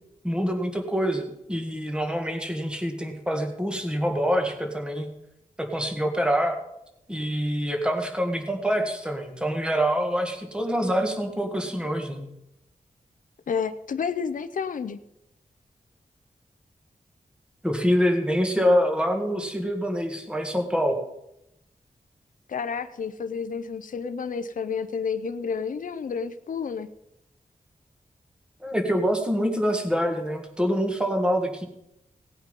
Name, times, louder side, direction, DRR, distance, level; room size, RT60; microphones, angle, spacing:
voice 1, 0.2-5.1 5.6-6.6 7.1-12.3 17.6-21.1 28.6-31.7, equal, 5° right, 4 dB, 1.9 m, -25 dB
voice 2, 13.5-15.0 22.5-26.9, left 6 dB, 70° left, 10 dB, 0.7 m, -30 dB
17.5 x 9.0 x 5.4 m, 0.85 s
wide cardioid pair, 120°, 14 cm